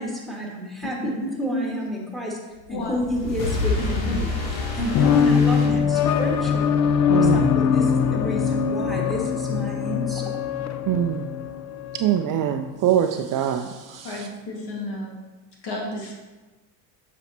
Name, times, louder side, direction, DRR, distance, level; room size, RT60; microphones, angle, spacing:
voice 1, 0.0-2.4 2.7-6.7 7.1-10.4, equal, ahead, -2 dB, 2.1 m, -30 dB
voice 2, 1.2-1.7 2.7-3.0 14.0-15.1 15.6-16.1, left 1 dB, 50° left, -1 dB, 2.1 m, -31 dB
sound 1, 2.7-6.5, left 3 dB, 90° left, 1.5 m, -28 dB
sound 2, 4.9-12.3, left 7 dB, 35° left, 0.5 m, -22 dB
voice 3, 7.1-7.4 10.9-11.3 11.9-14.3, right 10 dB, 40° right, 7 dB, 0.5 m, -24 dB
7.8 x 5.5 x 3.0 m, 1.2 s
hypercardioid pair, 70°, 50 cm